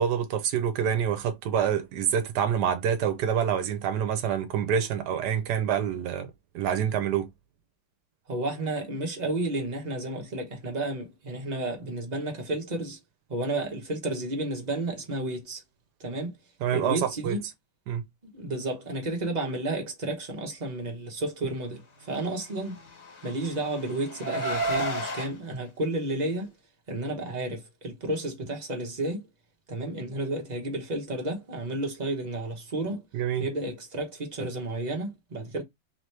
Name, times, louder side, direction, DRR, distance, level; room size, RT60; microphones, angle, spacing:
voice 1, 0.0-6.3 6.5-7.3 16.6-17.4 17.9-18.0 33.1-33.5, right 8 dB, 70° right, 1.2 m, -27 dB
voice 2, 8.3-13.0 13.3-15.6 16.0-16.4 16.7-17.4 18.2-22.8 23.2-26.5 26.9-29.3 29.7-33.0 33.4-35.6, right 2 dB, 30° right, 0.9 m, -32 dB
Car, 22.8-25.3, right 1 dB, 40° left, 1.7 m, -31 dB
3.7 x 2.9 x 3.1 m
omnidirectional pair, 1.9 m